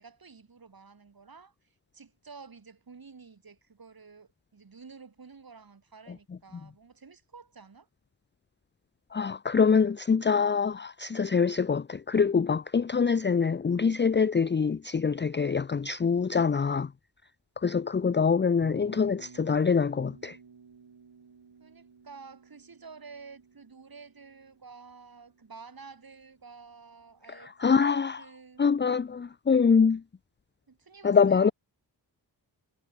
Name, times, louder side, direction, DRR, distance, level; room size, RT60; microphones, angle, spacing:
voice 1, 0.0-7.9 21.6-27.8 28.2-28.7 30.7-31.5, right 5 dB, 50° right, 4.0 m, -50 dB
voice 2, 9.1-16.9 17.6-20.4 27.3-28.2 28.6-30.0 31.0-31.5, left 5 dB, 25° left, 0.6 m, -25 dB
Bass guitar, 18.6-26.7, right 5 dB, 65° right, 7.8 m, -54 dB
cardioid pair, 45°, 44 cm